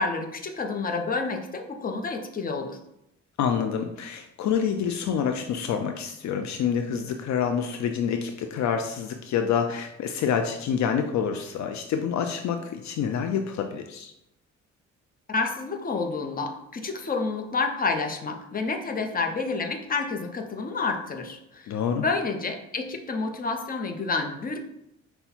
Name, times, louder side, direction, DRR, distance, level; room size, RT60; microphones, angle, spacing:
voice 1, 0.0-2.8 15.3-24.6, left 4 dB, 30° left, 4 dB, 0.7 m, -29 dB
voice 2, 3.4-14.1 21.7-22.0, left 7 dB, 65° left, 5 dB, 0.5 m, -27 dB
5.5 x 2.2 x 4.3 m, 0.84 s
cardioid pair, 90°, 30 cm